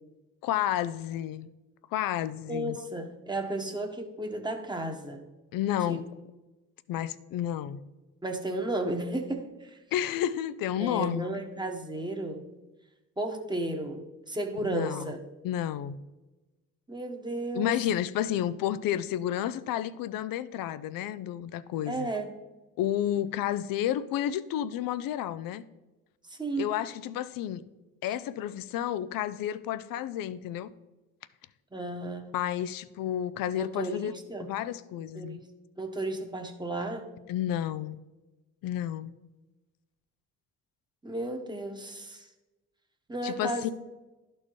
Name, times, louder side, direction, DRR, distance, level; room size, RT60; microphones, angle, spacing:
voice 1, 0.4-1.5 1.9-2.8 5.5-6.1 6.9-7.8 9.9-11.4 14.6-15.1 15.4-16.0 17.5-22.1 22.8-25.6 26.6-27.6 28.0-30.7 32.3-34.1 34.5-35.4 37.3-38.0 38.6-39.1 43.2-43.7, left 11 dB, 75° left, 15 dB, 0.5 m, -31 dB
voice 2, 2.5-5.2 5.9-6.0 8.2-9.8 10.8-12.5 13.2-15.2 16.9-17.8 21.9-22.3 26.3-26.7 31.7-32.3 33.6-34.5 35.1-35.5 35.8-37.1 41.0-42.3 43.1-43.7, right 2 dB, 15° right, 3 dB, 1.3 m, -34 dB
11.5 x 4.4 x 3.1 m, 1.1 s
supercardioid pair, 65°, 34 cm